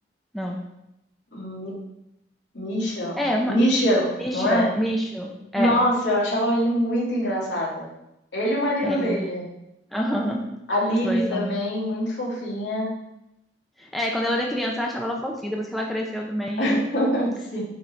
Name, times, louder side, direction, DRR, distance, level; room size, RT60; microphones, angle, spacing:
voice 1, 1.3-1.7 2.5-3.2 3.5-4.7 5.6-7.9 8.3-9.4 10.7-12.9 16.6-17.6, equal, 80° left, -5 dB, 2.8 m, -24 dB
voice 2, 3.2-3.6 4.2-5.8 8.8-9.2 9.9-10.4 10.9-11.5 13.8-16.9, equal, ahead, -2 dB, 0.7 m, -27 dB
9.2 x 4.3 x 4.6 m, 0.86 s
head